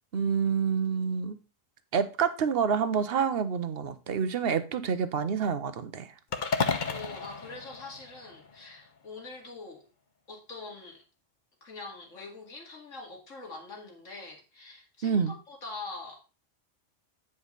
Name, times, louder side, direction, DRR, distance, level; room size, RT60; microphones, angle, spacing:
voice 1, 0.1-1.4 1.9-6.1 15.0-15.3, right 6 dB, 55° right, 12 dB, 1.0 m, -28 dB
sound 1, 6.3-8.6, left 4 dB, 45° left, 0.9 m, -32 dB
voice 2, 6.6-9.8 10.3-11.0 11.6-16.3, left 3 dB, 80° left, 1 dB, 2.6 m, -44 dB
9.2 x 5.1 x 4.0 m, 0.31 s
omnidirectional pair, 1.3 m